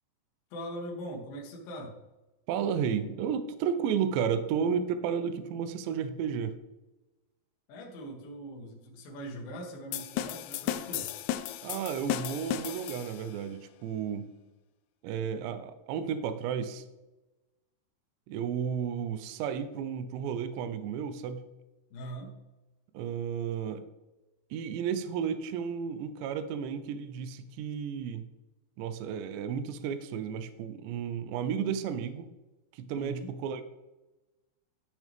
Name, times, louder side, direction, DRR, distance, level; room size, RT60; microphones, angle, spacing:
voice 1, 0.5-1.9 7.7-11.1 21.9-22.3 32.9-33.3, right 1 dB, 65° left, -1 dB, 2.6 m, -41 dB
voice 2, 2.5-6.6 11.6-14.3 15.0-16.8 18.3-21.4 22.9-23.8 24.5-28.2 28.8-32.3 32.7-33.6, right 7 dB, 80° right, 10 dB, 2.7 m, -32 dB
sound 1, 9.9-13.4, left 12 dB, 85° left, 2.8 m, -35 dB
13.0 x 6.7 x 3.4 m, 1.0 s
omnidirectional pair, 5.5 m